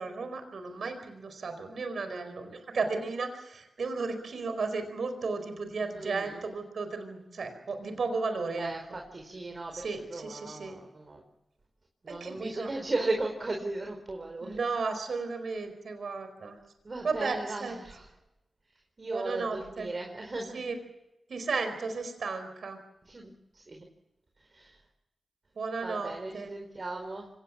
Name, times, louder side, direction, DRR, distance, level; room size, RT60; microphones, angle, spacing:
voice 1, 0.0-8.7 9.7-10.8 12.1-12.7 14.4-16.6 17.0-17.8 19.1-19.9 20.5-20.8 21.3-22.8 25.6-26.5, right 4 dB, 75° right, 8 dB, 4.7 m, -34 dB
voice 2, 5.9-6.4 8.6-11.2 12.0-14.6 16.8-18.1 19.0-20.7 23.0-23.8 24.5-24.8 25.8-27.3, right 2 dB, 50° right, 3 dB, 4.6 m, -36 dB
25.0 x 19.0 x 7.4 m, 0.91 s
cardioid pair, 40°, 0 cm